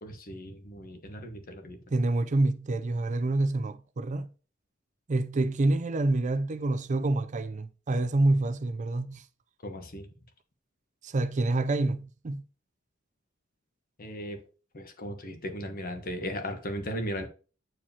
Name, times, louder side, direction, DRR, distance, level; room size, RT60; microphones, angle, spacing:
voice 1, 0.0-1.8 9.6-10.1 14.0-14.4 14.7-17.3, equal, 45° left, 1.1 m, -37 dB
voice 2, 1.9-4.3 5.1-9.2 11.0-12.4, right 2 dB, 35° right, 0.4 m, -27 dB
8.8 x 4.8 x 2.8 m
head